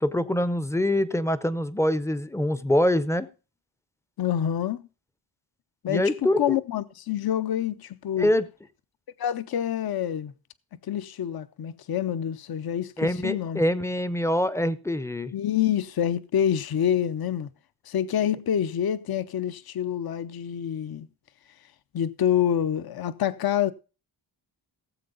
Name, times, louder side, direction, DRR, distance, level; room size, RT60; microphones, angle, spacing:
voice 1, 0.0-3.3 5.9-6.6 8.2-8.4 13.0-15.3, left 1 dB, 5° left, 0.6 m, -24 dB
voice 2, 4.2-4.8 5.8-8.3 9.2-10.3 10.8-13.6 15.3-17.5 17.9-21.1 21.9-23.7, left 10 dB, 55° left, 0.7 m, -27 dB
17.0 x 7.7 x 3.8 m
wide cardioid pair, 155°, 46 cm